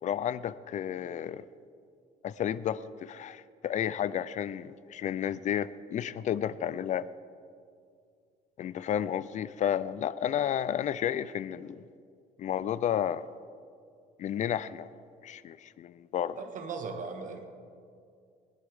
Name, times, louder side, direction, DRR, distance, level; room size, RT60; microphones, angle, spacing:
voice 1, 0.0-1.4 2.2-7.1 8.6-11.8 12.4-13.2 14.2-14.9 15.2-16.4, left 10 dB, 45° left, 17 dB, 0.4 m, -32 dB
voice 2, 16.4-17.4, right 4 dB, 50° right, 5 dB, 1.6 m, -38 dB
20.0 x 11.0 x 3.6 m, 2.3 s
cardioid pair, 110°, 17 cm